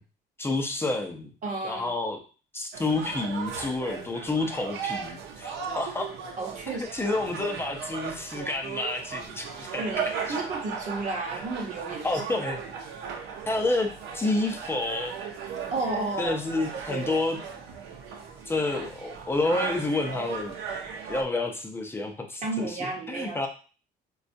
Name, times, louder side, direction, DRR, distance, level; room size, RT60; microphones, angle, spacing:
voice 1, 0.4-1.3 1.6-2.2 2.5-6.1 6.7-10.4 11.3-11.4 12.0-12.6 13.5-13.9 14.1-15.2 16.2-17.4 18.5-20.6 21.1-23.5, left 2 dB, 15° left, 3 dB, 0.6 m, -29 dB
voice 2, 1.4-2.0 6.4-6.9 9.8-12.1 15.7-17.2 22.4-23.5, right 3 dB, 45° right, 0 dB, 0.9 m, -32 dB
sound 1, 2.7-21.2, right 6 dB, 85° right, 0.6 m, -37 dB
4.1 x 2.3 x 2.6 m, 0.37 s
cardioid pair, 110°, 17 cm